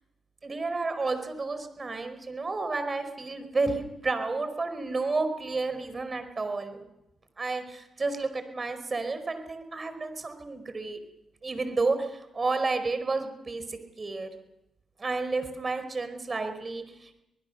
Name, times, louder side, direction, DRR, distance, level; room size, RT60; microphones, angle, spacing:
voice 1, 0.4-6.8 7.4-11.0 11.4-14.3 15.0-17.2, right 3 dB, 35° right, 9 dB, 4.7 m, -31 dB
24.0 x 20.5 x 6.8 m, 0.91 s
supercardioid pair, 50°, 0 cm